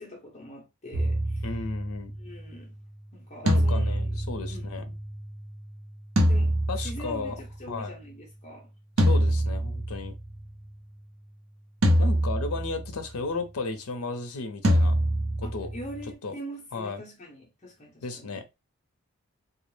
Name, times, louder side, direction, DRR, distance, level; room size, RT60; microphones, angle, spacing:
voice 1, 0.0-1.5 2.2-2.8 3.1-4.2 4.5-4.7 6.3-8.7 15.4-18.3, equal, 30° left, 0.7 m, -43 dB
sound 1, 0.9-2.2 3.5-5.2 6.2-7.5 9.0-10.3 11.8-13.0 14.6-16.1, equal, 60° right, 0.6 m, -25 dB
voice 2, 1.4-2.2 3.4-4.9 6.7-7.3 7.7-7.9 9.1-10.1 12.0-15.0 15.4-15.7 16.2-16.3 16.7-17.0 18.0-18.6, left 3 dB, 75° left, 0.5 m, -34 dB
2.2 x 2.0 x 3.0 m
head